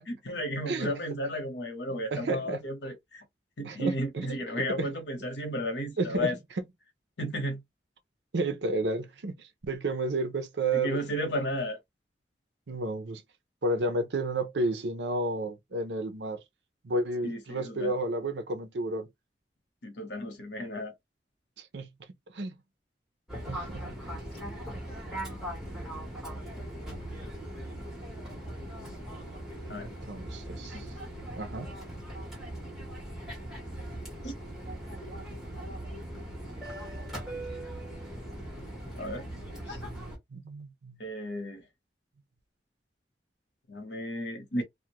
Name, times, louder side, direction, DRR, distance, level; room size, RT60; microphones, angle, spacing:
voice 1, 0.0-3.2 3.6-6.4 7.2-7.6 10.7-11.8 17.2-17.9 19.8-20.9 29.7-29.9 30.7-30.8 34.2-34.3 39.0-39.4 39.7-39.8 41.0-41.6 43.7-44.6, equal, 90° left, 0.9 m, -33 dB
voice 2, 2.1-2.6 3.6-4.4 4.7-4.9 6.0-6.3 8.3-11.0 12.7-13.2 13.6-16.4 16.8-19.1 21.6-21.9 22.3-22.5 23.5-24.2 29.6-30.9 31.4-31.7 39.8-41.0, right 2 dB, 85° right, 0.6 m, -32 dB
Fixed-wing aircraft airplane, 23.3-40.2, right 1 dB, ahead, 1.2 m, -40 dB
2.4 x 2.1 x 2.9 m
head